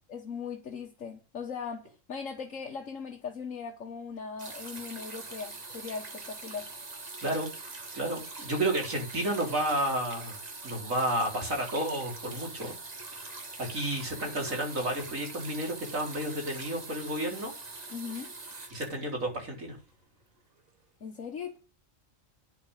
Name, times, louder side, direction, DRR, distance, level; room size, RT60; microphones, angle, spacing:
voice 1, 0.1-6.7 17.9-18.3 21.0-21.6, left 6 dB, 75° left, 1.8 m, -39 dB
sound 1, 4.4-19.8 20.7-20.8, right 3 dB, 30° right, 1.5 m, -43 dB
voice 2, 7.9-10.4 10.6-12.7 13.6-17.5 18.7-19.8, right 1 dB, 85° right, 4.6 m, -31 dB
10.5 x 6.0 x 8.0 m
omnidirectional pair, 1.4 m